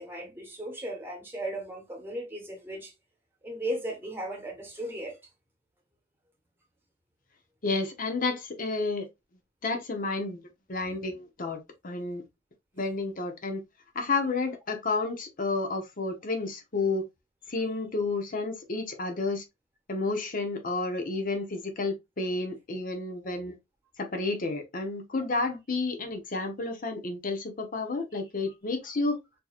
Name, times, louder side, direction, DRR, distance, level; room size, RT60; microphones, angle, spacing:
voice 1, 0.0-2.9 3.4-5.2, right 1 dB, 10° right, 1.1 m, -36 dB
voice 2, 7.6-9.1 9.6-10.4 10.7-12.2 12.8-13.6 13.9-17.0 17.5-19.4 19.9-23.5 24.0-29.2, left 3 dB, 45° left, 0.8 m, -31 dB
4.5 x 2.8 x 2.3 m
head